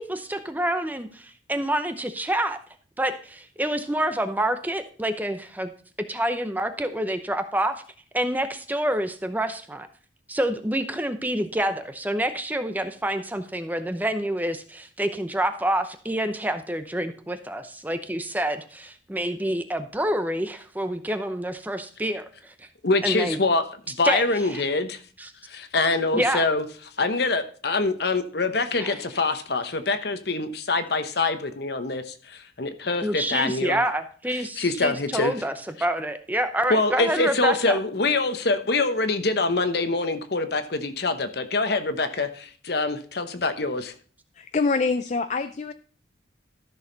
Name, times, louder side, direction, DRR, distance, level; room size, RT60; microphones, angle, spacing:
voice 1, 0.0-2.6 3.0-5.7 6.1-7.7 8.1-9.9 10.3-22.7 23.0-23.4 24.0-24.6 25.2-25.3 26.1-26.4 28.8-29.0 33.0-37.8, right 1 dB, 10° right, 9 dB, 0.7 m, -27 dB
voice 2, 22.8-25.0 25.5-26.6 27.0-33.8 34.4-35.3 36.7-43.9, left 3 dB, 60° left, 9 dB, 1.0 m, -25 dB
voice 3, 44.4-45.7, left 4 dB, 40° left, 10 dB, 0.4 m, -25 dB
13.5 x 6.4 x 4.0 m, 0.43 s
head